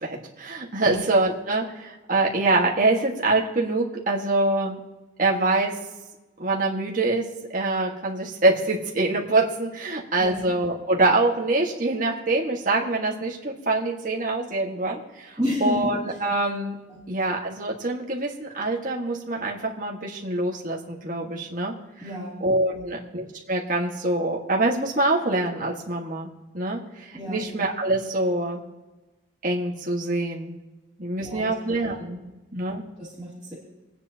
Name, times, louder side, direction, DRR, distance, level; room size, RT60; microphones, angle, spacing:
voice 1, 0.0-4.8 5.2-5.7 6.4-7.2 7.5-16.7 17.1-21.7 22.4-26.3 26.5-28.6 29.4-30.5 31.0-32.2 32.5-32.9, right 2 dB, 40° right, -2 dB, 1.6 m, -25 dB
voice 2, 10.2-10.5 15.4-15.8 16.9-17.0 22.0-22.4 22.7-23.0 27.1-27.4 31.2-31.5 32.2-32.3 33.0-33.5, equal, 15° right, -9 dB, 2.8 m, -31 dB
28.0 x 9.5 x 2.9 m, 1.1 s
head